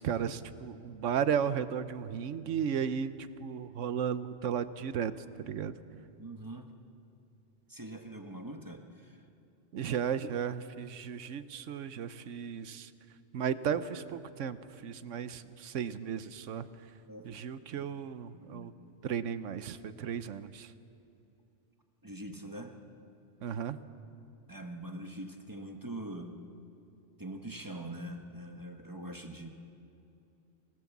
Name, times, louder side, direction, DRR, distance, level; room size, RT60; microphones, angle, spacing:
voice 1, 0.0-3.1 3.4-5.1 5.4-5.7 9.7-12.9 13.3-14.6 14.8-16.7 17.2-18.7 19.0-20.7 23.4-23.8, right 8 dB, 70° right, 13 dB, 1.1 m, -34 dB
voice 2, 6.2-6.7 7.7-9.2 17.1-17.4 18.3-18.7 22.0-22.8 24.5-26.4 27.2-29.5, right 1 dB, 15° right, 4 dB, 1.3 m, -43 dB
24.5 x 18.0 x 7.3 m, 2.7 s
omnidirectional pair, 1.3 m